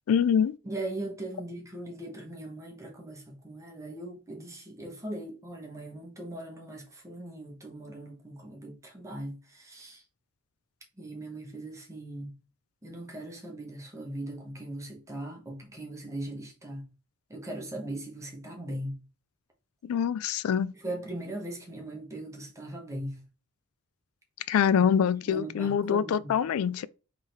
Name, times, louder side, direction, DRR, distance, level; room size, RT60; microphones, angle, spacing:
voice 1, 0.1-0.6 19.8-20.7 24.5-26.9, left 8 dB, 70° left, 0.3 m, -25 dB
voice 2, 0.6-10.0 11.0-12.3 12.8-16.9 17.3-19.0 20.7-23.2 25.0-26.3, right 1 dB, 15° right, 1.1 m, -39 dB
3.6 x 3.3 x 4.4 m
head